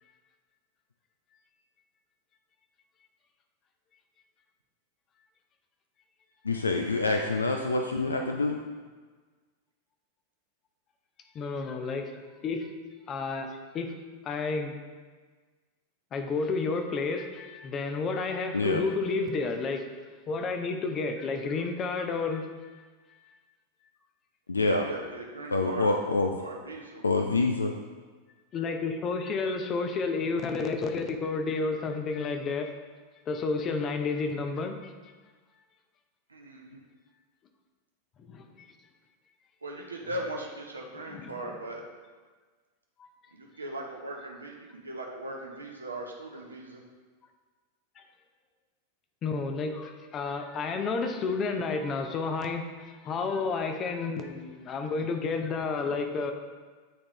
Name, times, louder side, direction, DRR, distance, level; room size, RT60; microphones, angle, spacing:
voice 1, 6.4-8.6 18.5-18.8 24.5-24.9 25.5-26.3 27.0-27.7, left 3 dB, 75° left, 4 dB, 0.3 m, -26 dB
voice 2, 11.3-12.1 12.4-12.8 13.1-14.8 16.1-19.9 20.3-22.8 28.5-32.7 33.3-34.9 38.2-38.7 41.1-41.3 43.0-43.1 48.0-48.1 49.2-56.3, left 4 dB, 30° left, 5 dB, 0.6 m, -31 dB
voice 3, 24.6-25.9 26.4-27.0 36.3-36.8 39.6-41.8 43.3-46.8, right 1 dB, 75° right, 0 dB, 0.7 m, -39 dB
8.7 x 3.6 x 3.0 m, 1.4 s
figure-of-eight pair, 90°, 0 cm